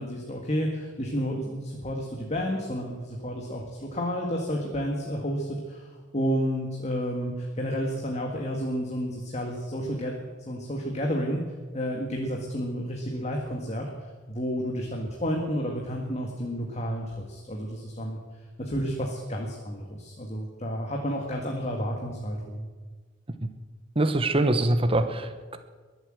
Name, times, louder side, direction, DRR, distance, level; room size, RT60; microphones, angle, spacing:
voice 1, 0.0-11.4 11.7-13.9 14.3-18.2 18.6-22.7, equal, 35° left, 0 dB, 1.8 m, -31 dB
voice 2, 24.0-25.6, right 2 dB, 30° right, 8 dB, 1.0 m, -24 dB
22.0 x 8.1 x 7.8 m, 1.4 s
head